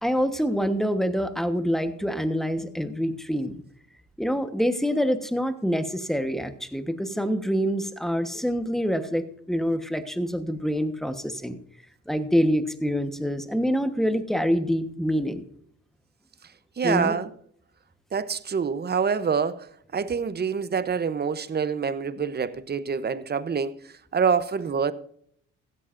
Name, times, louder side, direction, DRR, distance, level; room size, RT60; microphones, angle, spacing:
voice 1, 0.0-3.6 4.2-11.6 12.1-15.4 16.8-17.1, equal, ahead, 1.2 m, -26 dB
voice 2, 16.8-17.3 18.1-24.9, right 6 dB, 35° right, 0.8 m, -26 dB
16.0 x 13.5 x 2.6 m
cardioid pair, 90°, 30 cm